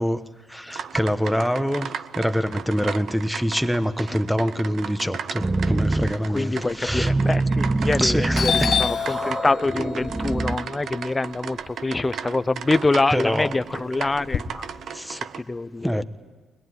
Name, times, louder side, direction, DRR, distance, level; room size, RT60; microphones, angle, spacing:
voice 1, 0.0-7.1 8.0-9.2 13.1-13.5 14.9-15.2 15.8-16.0, equal, ahead, 11 dB, 1.2 m, -25 dB
sound 1, 0.7-15.4, right 7 dB, 65° right, 0.9 m, -36 dB
sound 2, 5.4-6.2 6.6-10.6, right 2 dB, 20° right, 0.8 m, -25 dB
voice 2, 6.3-14.7 15.3-16.0, left 2 dB, 20° left, 16 dB, 0.7 m, -25 dB
Doorbell, 7.8-8.1 8.3-12.5 12.9-14.4, left 7 dB, 60° left, 1.2 m, -28 dB
21.5 x 21.5 x 9.6 m, 1.4 s
cardioid pair, 90°, 0 cm